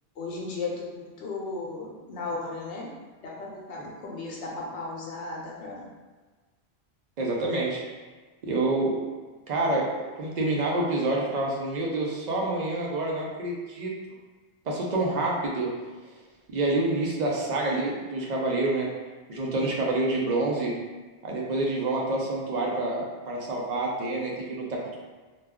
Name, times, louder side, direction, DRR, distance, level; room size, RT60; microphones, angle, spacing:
voice 1, 0.2-2.9 3.2-5.9, left 3 dB, 80° left, -3 dB, 0.9 m, -35 dB
voice 2, 7.2-7.8 8.4-8.9 9.5-13.9 14.6-15.7 16.5-18.9 19.3-20.7 21.2-25.0, right 2 dB, 50° right, -3 dB, 0.6 m, -27 dB
2.3 x 2.2 x 3.4 m, 1.3 s
omnidirectional pair, 1.1 m